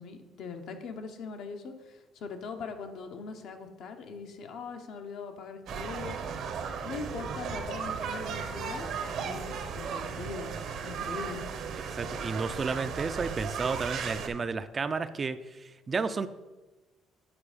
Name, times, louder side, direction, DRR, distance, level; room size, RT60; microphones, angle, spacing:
voice 1, 0.0-6.2 6.8-8.8 9.2-11.5, left 5 dB, 65° left, 6 dB, 0.9 m, -41 dB
sound 1, 5.7-14.3, right 6 dB, 65° right, 0.9 m, -36 dB
voice 2, 11.7-16.3, right 4 dB, 30° right, 12 dB, 0.4 m, -32 dB
8.8 x 4.3 x 5.0 m, 1.2 s
cardioid pair, 105°, 0 cm